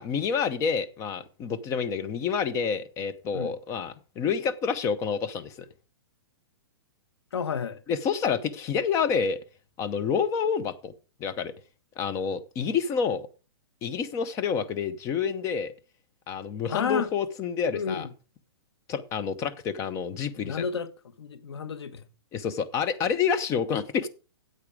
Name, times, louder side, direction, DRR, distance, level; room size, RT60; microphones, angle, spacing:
voice 1, 0.0-5.7 7.9-9.4 9.8-10.9 11.2-11.5 12.0-13.3 13.8-15.7 16.3-18.1 18.9-20.6 22.3-24.1, left 6 dB, 20° left, 0.8 m, -28 dB
voice 2, 7.3-7.8 16.7-17.1 17.7-18.1 20.4-20.9 21.2-22.0, left 6 dB, 85° left, 1.2 m, -31 dB
8.8 x 8.1 x 4.9 m
hypercardioid pair, 150°, 13 cm